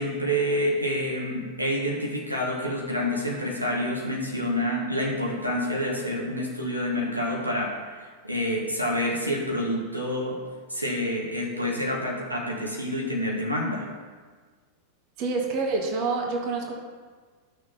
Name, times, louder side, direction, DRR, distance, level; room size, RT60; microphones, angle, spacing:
voice 1, 0.0-10.4 10.7-13.9, equal, 90° right, -1 dB, 1.4 m, -28 dB
voice 2, 15.2-16.7, right 3 dB, 40° right, 1 dB, 1.5 m, -27 dB
12.5 x 6.3 x 4.2 m, 1.5 s
figure-of-eight pair, 90°, 0 cm